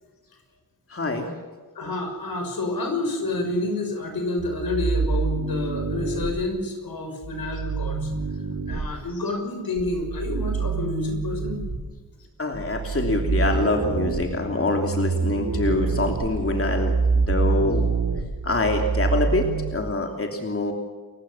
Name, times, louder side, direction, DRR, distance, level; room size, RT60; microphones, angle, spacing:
voice 1, 0.9-1.3 12.4-17.8 18.4-20.7, left 2 dB, 40° left, 3 dB, 3.1 m, -25 dB
voice 2, 1.7-8.1 8.7-11.6, left 2 dB, 80° left, 4 dB, 6.5 m, -29 dB
sound 1, 4.4-6.3 7.2-8.8 9.8-11.8 12.5-19.7, right 4 dB, 65° right, 3.5 m, -26 dB
30.0 x 15.5 x 7.3 m, 1.4 s
wide cardioid pair, 80°, 35 cm